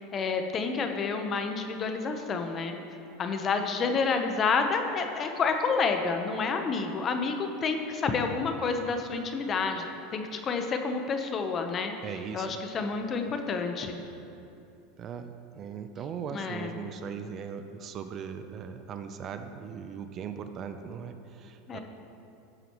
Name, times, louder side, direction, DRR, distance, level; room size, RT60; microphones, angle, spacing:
voice 1, 0.0-2.8 3.2-11.9 12.3-14.0 16.3-16.8 21.7-21.8, left 4 dB, 35° left, 5 dB, 0.9 m, -29 dB
voice 2, 12.0-12.6 15.0-21.8, right 7 dB, 40° right, 8 dB, 0.6 m, -39 dB
12.5 x 7.9 x 3.1 m, 2.8 s
hypercardioid pair, 100°, 0 cm